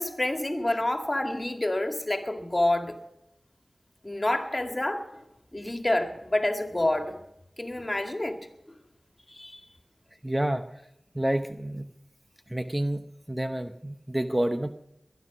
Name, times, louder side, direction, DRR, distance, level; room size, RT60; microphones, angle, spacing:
voice 1, 0.0-3.0 4.0-5.2 5.5-7.2 7.6-8.8 9.3-9.6, left 1 dB, 30° left, 5 dB, 2.1 m, -28 dB
voice 2, 10.2-10.6 11.1-11.9 12.5-13.0 13.3-14.7, right 1 dB, 15° right, 8 dB, 0.8 m, -28 dB
20.0 x 11.5 x 6.1 m, 0.82 s
wide cardioid pair, 50°, 0 cm